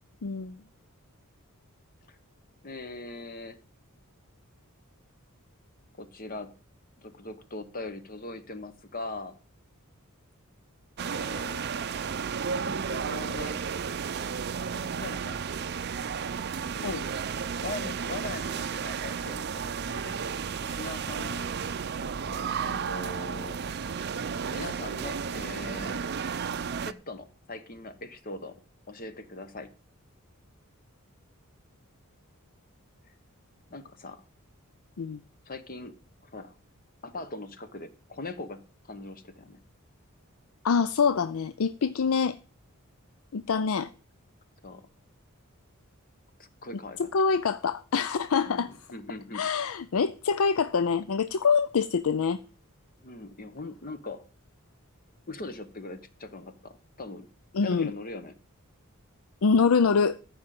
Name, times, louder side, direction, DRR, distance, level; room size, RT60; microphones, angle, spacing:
voice 1, 0.2-0.6 16.8-17.0 35.0-35.2 40.6-42.4 43.3-43.9 47.1-48.7 49.3-52.4 57.5-57.9 59.4-60.2, left 5 dB, 70° left, 0.5 m, -25 dB
voice 2, 2.6-3.6 6.0-6.5 7.0-9.4 11.0-11.7 12.9-13.7 14.7-15.4 16.7-17.1 17.6-20.2 20.6-21.5 22.0-23.6 24.5-26.0 26.8-28.6 28.9-29.7 33.1-33.2 33.7-34.2 35.5-35.9 36.2-36.6 37.0-38.6 38.9-39.6 44.6-44.8 46.4-47.1 48.5-49.4 53.0-54.2 55.3-57.3 57.6-58.4, left 2 dB, 40° left, 1.1 m, -41 dB
sound 1, 11.0-26.9, right 6 dB, 50° right, 0.5 m, -33 dB
14.0 x 5.1 x 7.6 m
head